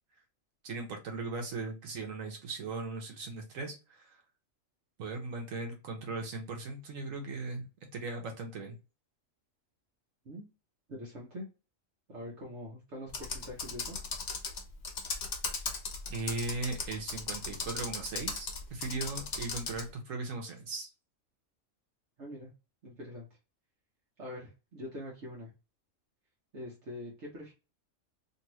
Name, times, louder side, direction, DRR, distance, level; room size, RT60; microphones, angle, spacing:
voice 1, 0.6-4.2 5.0-8.8 16.1-20.9, right 3 dB, 85° right, 3 dB, 1.2 m, -38 dB
voice 2, 10.9-11.5 12.1-14.0 22.2-22.5 22.8-23.3 24.2-25.5 26.5-27.5, left 1 dB, 60° right, -3 dB, 1.2 m, -44 dB
Computer keyboard, 13.1-19.9, left 4 dB, 60° left, 1.0 m, -37 dB
2.9 x 2.7 x 3.0 m, 0.30 s
omnidirectional pair, 1.4 m